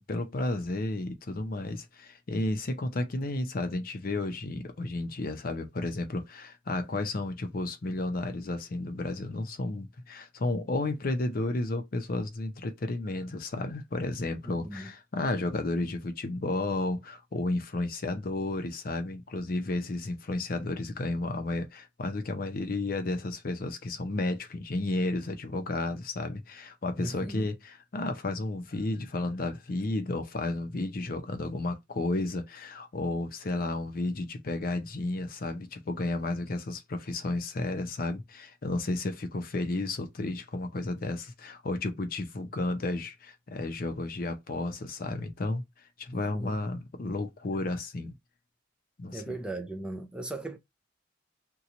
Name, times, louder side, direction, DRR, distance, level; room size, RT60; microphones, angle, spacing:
voice 1, 0.0-45.6 46.0-48.1 49.0-49.4, left 2 dB, 50° left, 0.6 m, -32 dB
voice 2, 14.5-14.9 27.0-27.5 46.3-46.6 49.1-50.6, right 2 dB, 5° right, 0.3 m, -38 dB
2.9 x 2.2 x 3.8 m
head